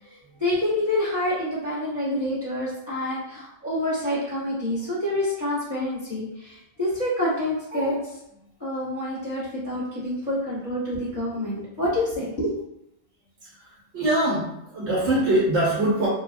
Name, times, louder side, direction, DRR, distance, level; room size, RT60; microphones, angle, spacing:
voice 1, 0.1-8.2 8.6-12.5, left 1 dB, 5° right, -8 dB, 0.8 m, -27 dB
voice 2, 13.4-16.1, right 1 dB, 90° right, -6 dB, 1.0 m, -23 dB
2.9 x 2.2 x 2.4 m, 0.82 s
omnidirectional pair, 1.2 m